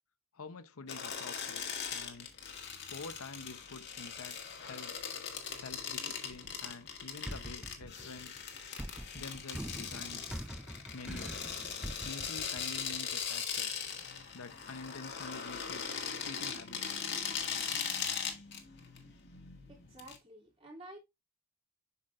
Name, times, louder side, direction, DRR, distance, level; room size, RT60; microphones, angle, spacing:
voice 1, 0.3-2.3 2.9-5.0 5.5-8.5 9.1-10.4 10.9-11.5 12.0-13.7 14.3-17.0, left 3 dB, 70° left, 0.8 m, -48 dB
sound 1, 0.9-20.2, left 7 dB, 55° left, 1.6 m, -40 dB
sound 2, 6.3-6.9 7.3-13.1, equal, 5° right, 0.3 m, -44 dB
voice 2, 19.7-21.0, right 1 dB, 25° right, 2.9 m, -51 dB
7.9 x 5.9 x 2.5 m
head